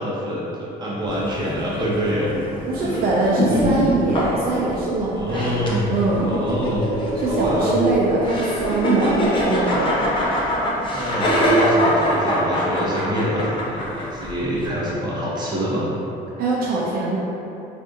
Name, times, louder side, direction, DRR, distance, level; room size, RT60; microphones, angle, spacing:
voice 1, 0.0-2.4 2.8-3.0 3.3-3.7 4.1-4.2 5.1-5.9 6.2-6.8 7.2-7.7 10.9-15.9, equal, 25° right, -6 dB, 0.8 m, -26 dB
sound 1, 1.1-14.7, equal, 30° left, 0.7 m, -23 dB
voice 2, 2.7-5.6 5.9-6.4 7.2-9.2 9.5-9.9 16.4-17.2, right 3 dB, 60° right, -5 dB, 0.5 m, -22 dB
2.6 x 2.5 x 3.7 m, 3.0 s
cardioid pair, 110°, 17 cm